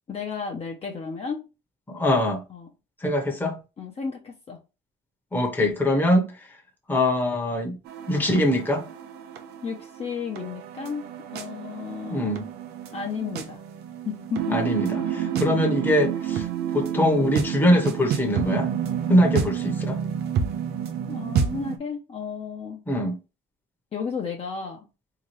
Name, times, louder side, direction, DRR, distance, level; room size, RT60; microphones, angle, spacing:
voice 1, 0.1-1.4 2.5-2.7 3.8-4.6 6.0-6.2 9.6-11.1 11.3-12.5 12.9-13.6 14.0-14.6 21.1-22.8 23.9-24.9, left 5 dB, 35° left, 0.9 m, -33 dB
voice 2, 1.9-2.4 3.0-3.6 5.3-6.5 6.9-7.8 8.1-8.9 12.1-12.4 14.5-16.5 16.7-18.7 19.1-20.0 22.9-23.2, left 1 dB, 10° left, 1.0 m, -23 dB
sound 1, 7.9-21.8, right 8 dB, 75° right, 0.7 m, -29 dB
3.6 x 2.9 x 3.2 m
cardioid pair, 110°, 17 cm